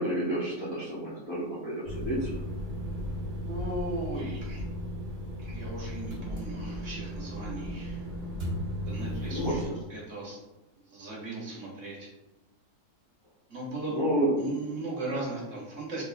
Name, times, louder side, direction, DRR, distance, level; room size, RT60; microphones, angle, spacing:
voice 1, 0.0-2.3 9.2-9.7 13.9-14.4, right 1 dB, 30° left, -9 dB, 0.6 m, -30 dB
sound 1, 1.8-9.7, equal, 40° right, 1.6 m, -35 dB
voice 2, 3.5-4.6 5.4-8.0 8.9-9.6 9.9-10.4 10.9-12.1 13.5-14.0 14.4-16.0, right 2 dB, 55° right, -4 dB, 1.1 m, -37 dB
3.6 x 3.0 x 2.3 m, 1.0 s
omnidirectional pair, 1.7 m